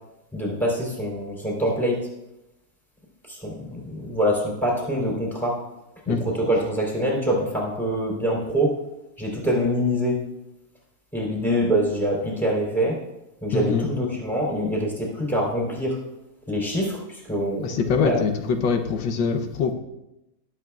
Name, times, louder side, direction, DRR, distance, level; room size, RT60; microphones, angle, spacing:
voice 1, 0.3-2.0 3.3-5.6 6.1-8.7 9.2-10.2 11.1-13.0 13.4-16.0 16.5-18.2, equal, ahead, -3 dB, 3.8 m, -25 dB
voice 2, 13.5-13.9 17.6-19.7, left 5 dB, 90° left, 5 dB, 1.6 m, -23 dB
18.5 x 8.5 x 2.4 m, 0.91 s
omnidirectional pair, 1.9 m